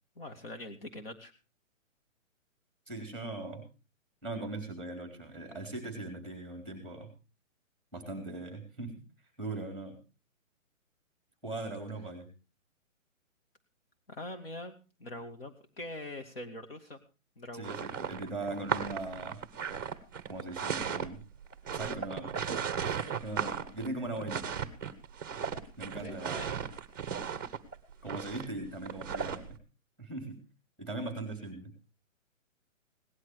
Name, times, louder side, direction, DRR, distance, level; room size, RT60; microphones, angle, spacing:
voice 1, 0.2-1.3 14.1-14.7 15.0-17.0 17.4-17.8 26.0-26.5, left 1 dB, 45° left, 5 dB, 2.4 m, -43 dB
voice 2, 2.9-3.6 4.2-7.1 7.9-9.0 9.4-10.0 11.4-12.3 17.5-19.4 20.3-21.2 21.7-24.4 25.8-26.6 28.0-29.6 30.0-30.4 30.8-31.7, right 2 dB, ahead, 5 dB, 3.5 m, -40 dB
sound 1, 17.6-29.5, right 7 dB, 15° right, 0.9 m, -36 dB
18.5 x 11.5 x 4.8 m, 0.33 s
hypercardioid pair, 175°, 40 cm